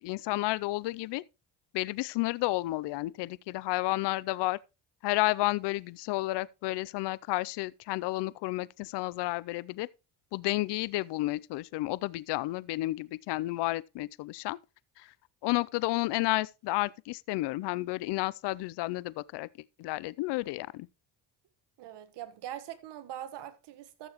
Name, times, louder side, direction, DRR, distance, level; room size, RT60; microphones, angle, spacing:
voice 1, 0.0-1.2 1.7-4.6 5.0-9.9 10.3-14.6 15.0-15.1 15.4-19.5 19.8-20.9, left 19 dB, 75° left, 0.6 m, -31 dB
voice 2, 21.8-24.1, right 11 dB, 75° right, 1.4 m, -42 dB
14.0 x 6.9 x 3.0 m
cardioid pair, 95°, 42 cm